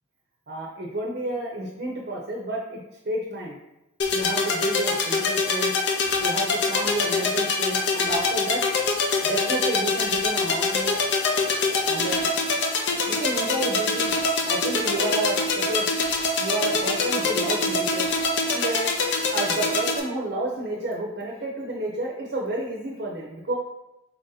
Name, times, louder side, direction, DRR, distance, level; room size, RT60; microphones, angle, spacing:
voice 1, 0.5-3.6 4.1-5.7 6.2-8.6 9.2-11.0 11.9-12.3 13.1-14.1 14.4-15.9 16.4-18.1 18.5-18.9 19.3-23.5, right 1 dB, 55° right, -2 dB, 0.6 m, -30 dB
sound 1, 4.0-20.0, left 3 dB, 60° left, 0.6 m, -24 dB
4.4 x 2.7 x 3.8 m, 0.94 s
head